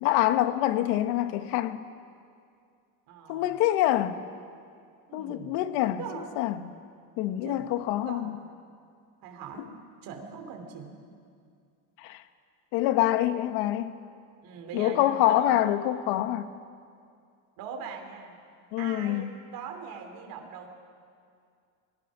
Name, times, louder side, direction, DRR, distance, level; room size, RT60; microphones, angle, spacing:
voice 1, 0.0-1.9 3.3-4.2 5.1-6.7 7.2-8.4 9.6-9.7 12.0-12.2 12.7-13.9 14.7-16.5 18.7-19.3, left 13 dB, 75° left, 10 dB, 1.3 m, -26 dB
voice 2, 3.1-3.6 5.1-5.5 6.0-6.4 7.4-8.3 9.2-9.7 10.0-11.0 14.4-15.6 17.6-18.4 18.8-20.7, right 6 dB, 50° right, 3 dB, 2.8 m, -41 dB
26.5 x 19.5 x 6.2 m, 2.3 s
cardioid pair, 165°, 42 cm